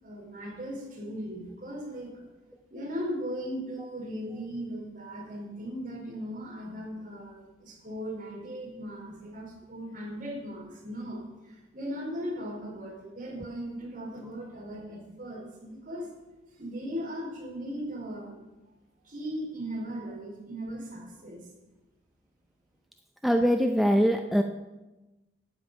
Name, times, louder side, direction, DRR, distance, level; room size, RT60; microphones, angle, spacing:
voice 1, 0.0-2.3 2.7-16.1 16.5-18.4 19.0-21.5, equal, 45° right, -3 dB, 4.8 m, -38 dB
voice 2, 23.2-24.4, equal, ahead, 4 dB, 0.5 m, -22 dB
12.5 x 5.5 x 9.1 m, 1.1 s
head